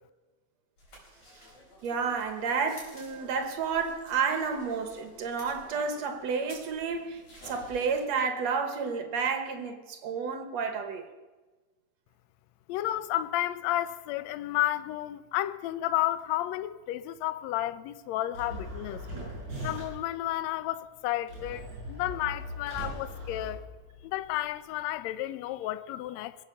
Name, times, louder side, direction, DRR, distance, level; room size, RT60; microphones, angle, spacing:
sound 1, 0.8-8.0, equal, 55° left, 5.5 m, -52 dB
voice 1, 1.8-11.1, right 5 dB, 65° right, 2.1 m, -31 dB
voice 2, 12.7-19.0 19.6-23.6 24.0-26.4, left 14 dB, 75° left, 1.7 m, -32 dB
sound 2, 18.3-20.2 21.3-24.1, equal, 35° right, 7.2 m, -39 dB
21.0 x 8.5 x 6.9 m
omnidirectional pair, 3.6 m